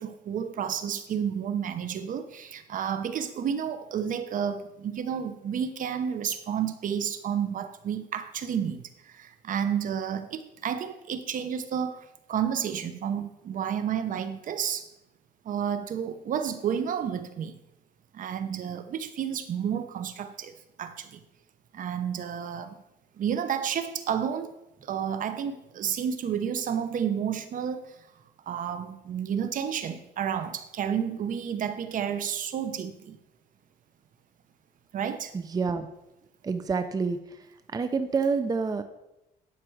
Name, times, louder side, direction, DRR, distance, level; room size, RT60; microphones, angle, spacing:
voice 1, 0.0-14.9 15.4-17.6 18.1-21.2 21.7-22.8 23.2-24.5 24.8-27.9 28.5-33.2 34.9-35.3, right 8 dB, 50° right, 10 dB, 0.9 m, -31 dB
voice 2, 35.3-35.9 36.4-37.4 37.7-38.8, right 5 dB, 20° right, 10 dB, 0.5 m, -28 dB
11.0 x 6.0 x 4.7 m, 0.94 s
cardioid pair, 110°, 17 cm